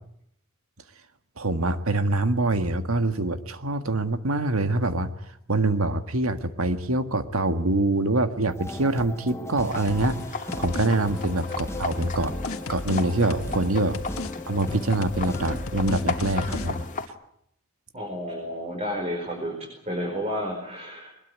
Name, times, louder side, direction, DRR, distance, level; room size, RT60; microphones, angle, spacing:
voice 1, 1.4-5.1 5.5-12.3 12.7-14.0 14.5-16.8, right 2 dB, 85° right, 9 dB, 1.7 m, -25 dB
sound 1, 8.5-17.0, left 2 dB, 15° left, 1.1 m, -37 dB
sound 2, 9.6-17.1, left 4 dB, 40° left, 2.1 m, -36 dB
sound 3, 9.9-10.2 10.5-10.9 11.2-13.7 13.9-14.3 14.6-16.7, left 2 dB, 85° left, 1.6 m, -35 dB
voice 2, 17.9-21.1, equal, 30° right, 0 dB, 5.2 m, -31 dB
22.5 x 21.0 x 9.4 m, 0.73 s
head